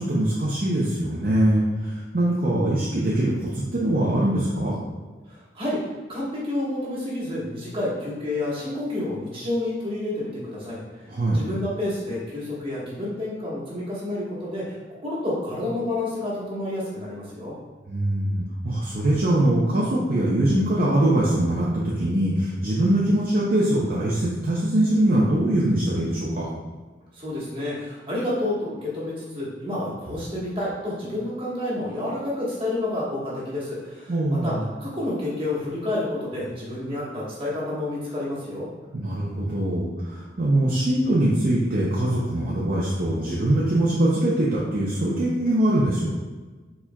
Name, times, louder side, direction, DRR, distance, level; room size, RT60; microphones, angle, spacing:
voice 1, 0.0-4.8 11.1-11.4 17.9-26.5 34.1-34.7 38.9-46.1, right 1 dB, 50° right, -6 dB, 0.6 m, -22 dB
voice 2, 5.3-5.8 6.1-10.8 11.3-17.5 27.1-34.5 34.8-38.7, left 1 dB, 30° right, -7 dB, 1.3 m, -29 dB
4.6 x 4.3 x 2.2 m, 1.3 s
head